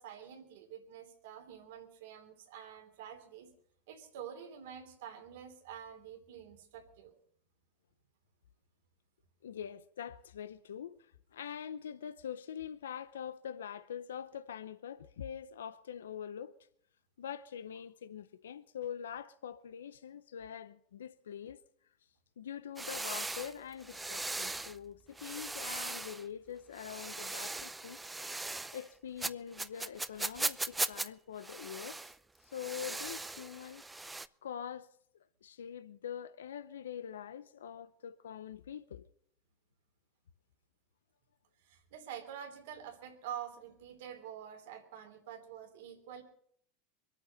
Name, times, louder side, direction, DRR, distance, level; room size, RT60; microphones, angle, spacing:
voice 1, 0.0-3.5 3.9-7.1 41.6-46.2, right 9 dB, 75° right, 3.1 m, -47 dB
voice 2, 9.4-16.6 17.2-21.6 22.4-28.0 28.7-32.1 32.4-33.8 34.4-34.9 35.4-39.1, left 9 dB, 90° left, 0.7 m, -44 dB
sound 1, 22.8-24.8 25.2-26.2 26.7-28.9 29.2-31.1 31.4-32.2 32.5-34.3, right 2 dB, 10° right, 0.6 m, -39 dB
24.0 x 8.8 x 5.5 m
hypercardioid pair, 100°, 0 cm